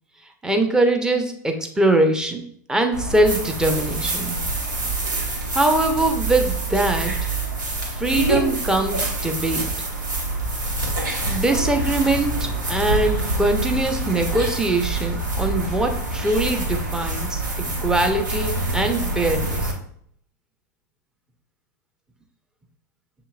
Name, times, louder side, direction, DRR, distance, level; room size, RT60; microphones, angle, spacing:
voice 1, 0.4-2.4 2.7-4.4 5.5-7.2 7.8-9.7 11.3-19.7, right 2 dB, 5° right, 4 dB, 0.6 m, -22 dB
sound 1, 2.9-19.7, right 2 dB, 80° right, 1.1 m, -26 dB
6.6 x 2.8 x 2.4 m, 0.65 s
figure-of-eight pair, 90°, 10 cm